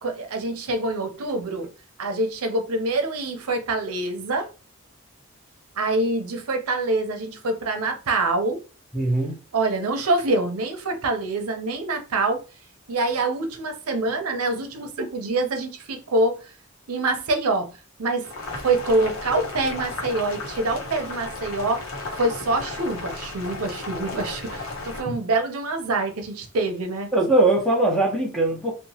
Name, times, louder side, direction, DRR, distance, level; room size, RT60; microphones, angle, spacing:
voice 1, 0.0-1.7 2.0-4.5 5.8-8.6 9.5-12.4 12.9-16.4 16.9-17.7 18.0-18.3 18.6-21.8 22.1-27.1, right 2 dB, 85° right, 0.6 m, -25 dB
voice 2, 8.9-9.4 25.1-25.2 27.1-28.7, right 2 dB, ahead, 0.6 m, -21 dB
Boiling, 18.2-25.0, left 2 dB, 70° left, 0.8 m, -34 dB
2.8 x 2.1 x 2.7 m
head